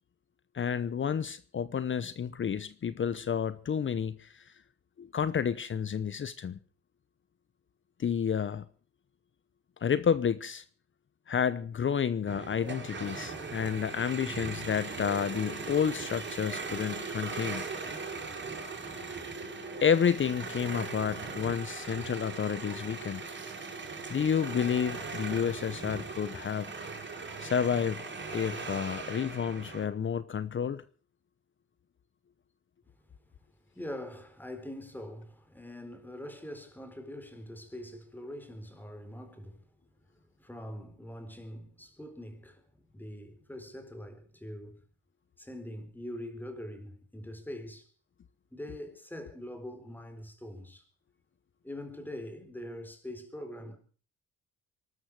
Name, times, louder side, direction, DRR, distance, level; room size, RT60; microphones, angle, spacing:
voice 1, 0.5-4.4 5.0-6.6 8.0-8.6 9.8-10.6 11.3-17.6 19.8-23.2 24.1-26.7 27.4-28.0 28.3-30.8, left 7 dB, 40° left, 0.9 m, -30 dB
sound 1, 12.3-29.8, right 4 dB, 40° right, 6.3 m, -39 dB
voice 2, 33.7-39.7 40.1-44.8 45.4-47.9 48.5-50.9 51.6-53.8, left 1 dB, 5° left, 4.2 m, -43 dB
23.5 x 12.5 x 4.9 m
cardioid pair, 90°, 30 cm